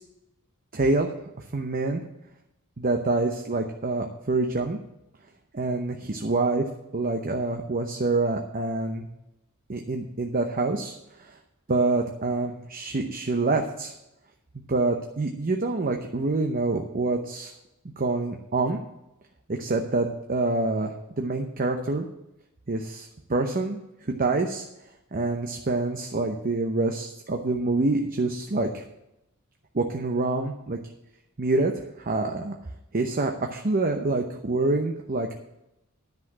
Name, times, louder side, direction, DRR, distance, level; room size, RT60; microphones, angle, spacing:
voice 1, 0.7-1.1 1.5-2.0 2.8-4.8 5.5-6.6 6.9-9.1 9.7-11.4 11.7-13.9 14.7-17.5 17.8-18.8 19.5-22.1 22.7-23.8 24.1-24.6 25.1-28.8 29.7-30.8 31.4-31.7 32.0-32.5 32.9-35.4, right 2 dB, 45° right, 3 dB, 0.8 m, -26 dB
10.5 x 6.0 x 7.5 m, 0.88 s
head